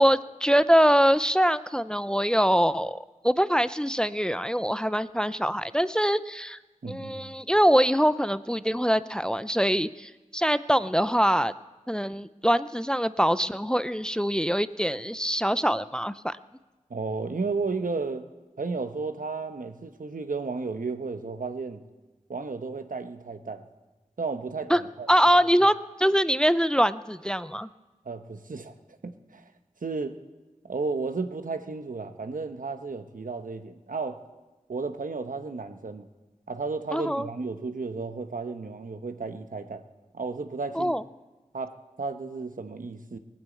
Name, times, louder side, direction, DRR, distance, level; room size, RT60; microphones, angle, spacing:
voice 1, 0.0-3.0 3.2-6.6 6.9-11.5 11.9-16.4 24.7-24.8 25.1-27.7 36.9-37.3 40.7-41.0, equal, 5° left, 14 dB, 0.5 m, -23 dB
voice 2, 6.8-7.3 16.9-18.2 18.6-21.8 22.3-23.6 24.2-25.4 28.0-28.7 29.0-29.4 29.8-30.2 30.6-34.2 34.7-36.1 36.5-39.8 40.1-40.9 41.5-43.2, right 4 dB, 85° right, 8 dB, 1.0 m, -33 dB
19.0 x 9.1 x 8.4 m, 1.2 s
wide cardioid pair, 40°, 14 cm